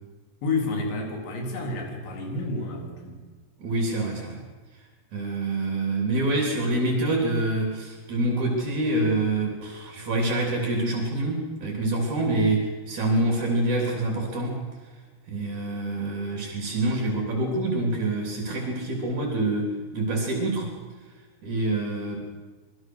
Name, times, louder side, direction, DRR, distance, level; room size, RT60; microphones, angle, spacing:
voice 1, 0.4-3.2, left 3 dB, 75° left, 1 dB, 6.0 m, -30 dB
voice 2, 3.6-4.4 5.1-14.6 15.3-20.7 21.4-22.2, right 2 dB, 45° right, 0 dB, 4.4 m, -26 dB
27.0 x 21.5 x 6.4 m, 1.4 s
omnidirectional pair, 5.2 m